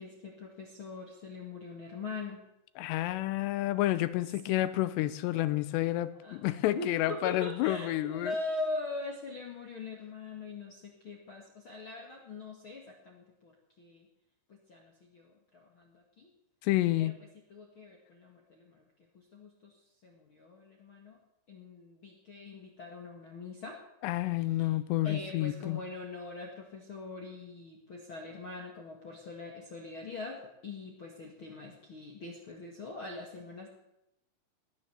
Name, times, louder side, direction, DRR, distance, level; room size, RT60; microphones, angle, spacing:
voice 1, 0.0-2.4 4.5-4.7 6.1-14.1 14.5-16.3 17.0-17.1 17.5-18.8 19.1-21.2 21.5-23.8 24.4-24.7 25.0-33.7, left 3 dB, 55° left, 0 dB, 1.5 m, -42 dB
voice 2, 2.8-8.3 16.6-17.2 24.0-25.8, left 15 dB, 80° left, 15 dB, 2.6 m, -30 dB
19.0 x 9.7 x 7.1 m, 0.86 s
omnidirectional pair, 5.4 m